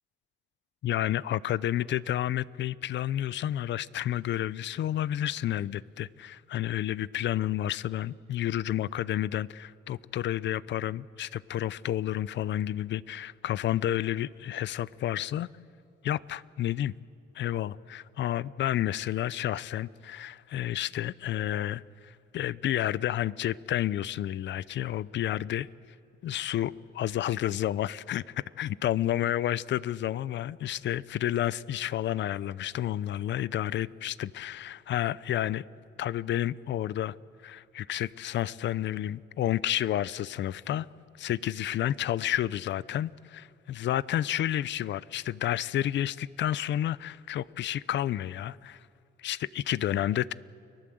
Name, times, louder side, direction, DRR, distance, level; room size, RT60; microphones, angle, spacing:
voice 1, 0.8-15.5 16.0-16.9 17.3-25.7 26.2-35.6 36.0-37.1 37.4-40.9 41.2-48.8 49.2-50.3, left 12 dB, 65° left, 0.6 m, -30 dB
29.5 x 20.0 x 7.8 m
cardioid pair, 90°, 20 cm